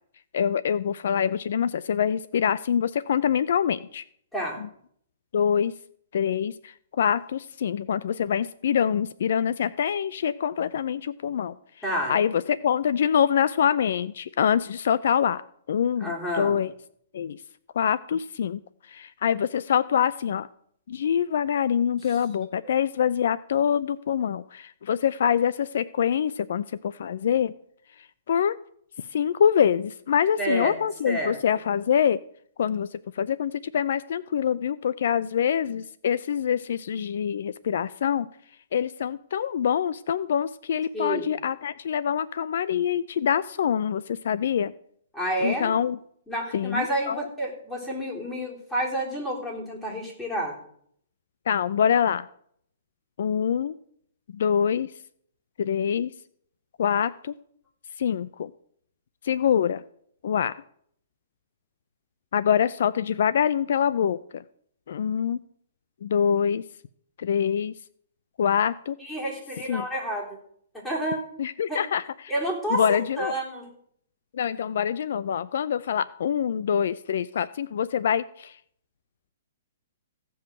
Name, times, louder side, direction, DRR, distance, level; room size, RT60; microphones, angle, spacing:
voice 1, 0.3-4.0 4.6-4.7 5.3-5.7 6.1-11.6 12.1-15.4 15.7-16.7 17.1-17.4 17.8-18.6 18.9-20.5 20.9-27.5 28.3-28.6 29.1-32.2 32.6-38.3 38.7-44.7 45.4-46.0 46.5-47.3 51.5-52.3 53.2-53.7 54.3-54.9 55.6-56.1 56.8-57.3 58.0-58.5 59.2-59.8 60.2-60.5 62.3-64.4 64.9-65.4 66.0-66.6 67.2-67.7 68.4-69.0 69.7-69.9 71.4-72.0 72.7-73.3 74.3-78.6, left 8 dB, 65° left, 17 dB, 0.4 m, -25 dB
voice 2, 11.8-12.2 16.0-16.6 22.1-22.2 30.4-30.8 31.0-31.4 40.9-41.3 45.1-45.7 46.3-50.6 69.0-70.4 70.7-71.2 71.7-71.8 72.3-73.7, right 1 dB, 10° left, -3 dB, 3.7 m, -29 dB
16.0 x 5.4 x 7.6 m, 0.65 s
hypercardioid pair, 150°, 0 cm